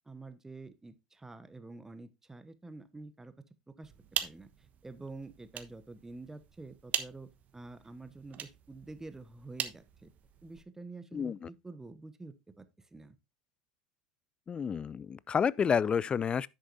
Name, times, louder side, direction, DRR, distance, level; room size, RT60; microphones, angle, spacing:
voice 1, 0.0-3.3 3.7-3.9 4.2-10.1 10.4-13.2, right 3 dB, 10° right, 1.1 m, -48 dB
sound 1, 3.8-10.7, right 9 dB, 40° right, 1.1 m, -41 dB
voice 2, 11.1-11.5 14.5-16.5, left 7 dB, 25° left, 0.4 m, -30 dB
10.5 x 7.9 x 2.6 m
hypercardioid pair, 80°, 4 cm